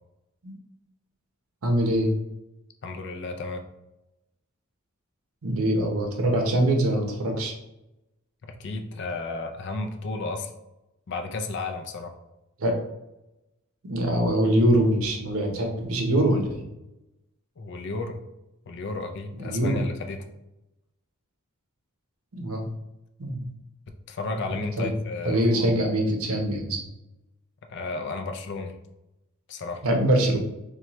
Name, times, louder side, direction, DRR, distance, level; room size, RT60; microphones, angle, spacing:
voice 1, 1.6-2.1 5.4-7.5 12.6-12.8 13.9-16.6 19.4-19.8 22.3-22.7 23.2-23.5 24.5-24.9 25.3-26.9 29.8-30.4, right 1 dB, 75° right, 2 dB, 0.7 m, -23 dB
voice 2, 2.8-3.6 8.4-10.5 11.1-12.2 17.6-18.2 18.7-20.3 24.1-25.8 27.7-28.8 29.5-29.9, left 3 dB, 50° left, 6 dB, 0.4 m, -33 dB
4.3 x 2.3 x 2.9 m, 0.94 s
head